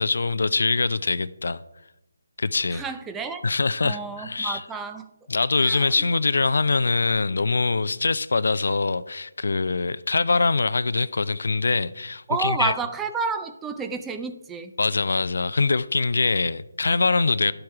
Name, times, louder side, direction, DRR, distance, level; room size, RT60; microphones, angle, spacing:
voice 1, 0.0-1.6 2.4-2.8 3.4-4.6 5.3-12.7 14.8-17.5, left 3 dB, 65° left, 0.5 m, -23 dB
voice 2, 2.7-3.5 3.8-5.1 5.6-6.0 12.3-14.7, right 4 dB, 10° right, 0.6 m, -30 dB
11.5 x 7.8 x 4.8 m
figure-of-eight pair, 155°, 0 cm